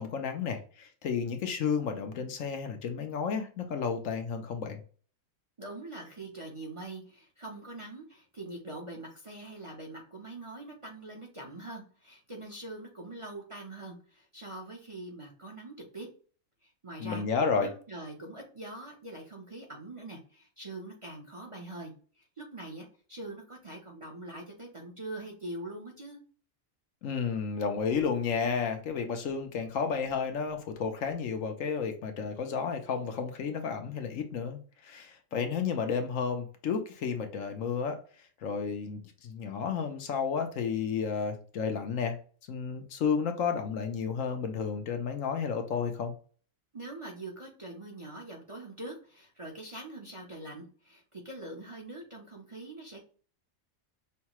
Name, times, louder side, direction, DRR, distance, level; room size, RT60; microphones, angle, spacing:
voice 1, 0.0-4.8 17.0-17.7 27.0-38.0 38.4-42.2 42.5-46.1, left 6 dB, 75° left, 1.1 m, -32 dB
voice 2, 5.6-16.1 16.6-17.2 17.6-26.2 46.7-53.0, right 2 dB, 30° right, 0.7 m, -43 dB
5.6 x 2.2 x 2.9 m
omnidirectional pair, 1.4 m